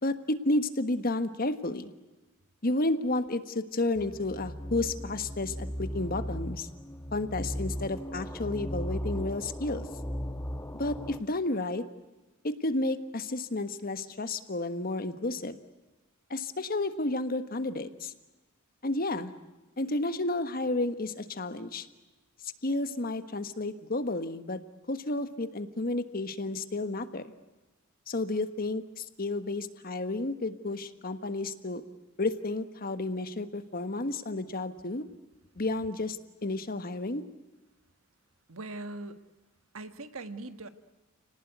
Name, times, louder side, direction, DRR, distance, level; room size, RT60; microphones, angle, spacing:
voice 1, 0.0-1.9 2.6-6.7 7.1-9.9 10.7-11.8 12.4-15.6 16.3-18.1 18.8-19.3 19.8-21.9 22.6-24.6 24.9-27.3 28.1-31.8 32.2-35.0 35.6-37.2, left 2 dB, 45° left, 10 dB, 1.4 m, -31 dB
sound 1, 3.9-11.2, equal, 15° left, 1.2 m, -37 dB
voice 2, 38.5-39.2 39.7-40.7, right 2 dB, 85° right, 10 dB, 1.6 m, -40 dB
30.0 x 18.5 x 9.4 m, 1.1 s
head